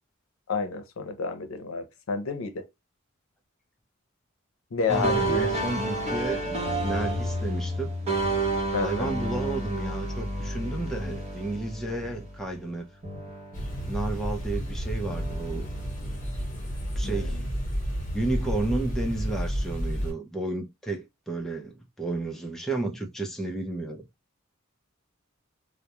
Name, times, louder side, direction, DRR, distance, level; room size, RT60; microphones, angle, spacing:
voice 1, 0.5-2.7 4.7-5.5 8.7-9.1 17.0-17.4, left 4 dB, 90° left, 0.5 m, -30 dB
voice 2, 4.9-7.9 8.8-12.9 13.9-15.6 17.0-17.4 18.1-24.0, right 2 dB, ahead, 0.4 m, -32 dB
sound 1, 4.9-12.8 13.0-14.6 15.0-16.6, right 1 dB, 30° right, 0.8 m, -31 dB
sound 2, 13.5-20.1, equal, 40° left, 1.0 m, -31 dB
2.2 x 2.0 x 2.8 m
head